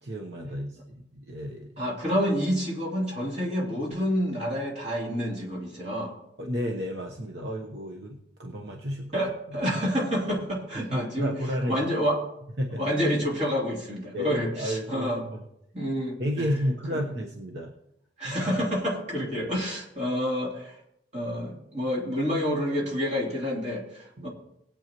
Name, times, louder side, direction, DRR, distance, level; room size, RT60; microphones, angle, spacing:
voice 1, 0.0-1.8 6.4-9.7 10.7-11.9 12.6-12.9 14.1-15.4 16.2-17.7 18.2-18.4 19.2-19.5 24.2-24.3, equal, 60° right, 1 dB, 1.1 m, -32 dB
voice 2, 1.8-6.1 9.1-11.3 11.7-12.2 12.8-15.2 15.7-16.4 16.9-17.0 18.2-20.7 21.1-24.3, equal, 35° right, -4 dB, 3.3 m, -28 dB
18.5 x 8.7 x 3.0 m, 0.81 s
head